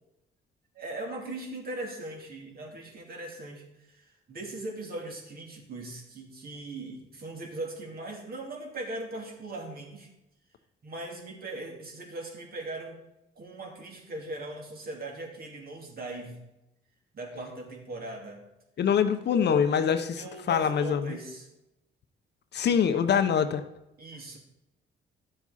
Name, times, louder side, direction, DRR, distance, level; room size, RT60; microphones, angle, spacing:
voice 1, 0.7-10.1 10.8-13.0 13.4-16.4 17.1-18.4 20.2-21.5 22.7-22.8 24.0-24.4, right 2 dB, 50° right, 1 dB, 2.7 m, -39 dB
voice 2, 18.8-21.2 22.5-23.6, left 7 dB, 60° left, 9 dB, 0.9 m, -24 dB
11.0 x 7.4 x 4.2 m, 0.89 s
cardioid pair, 90°, 20 cm